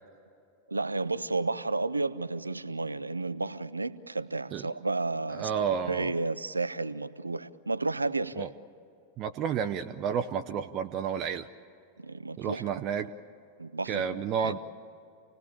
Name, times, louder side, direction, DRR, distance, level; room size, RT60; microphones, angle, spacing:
voice 1, 0.7-5.5 5.9-8.5 12.0-12.6 13.6-14.1 14.4-14.5, right 3 dB, 80° right, 0.6 m, -32 dB
voice 2, 5.3-6.1 8.4-8.5 9.2-11.5 12.4-13.1 13.9-14.6, right 7 dB, 35° right, 0.6 m, -31 dB
28.5 x 19.0 x 8.8 m
figure-of-eight pair, 90°, 0 cm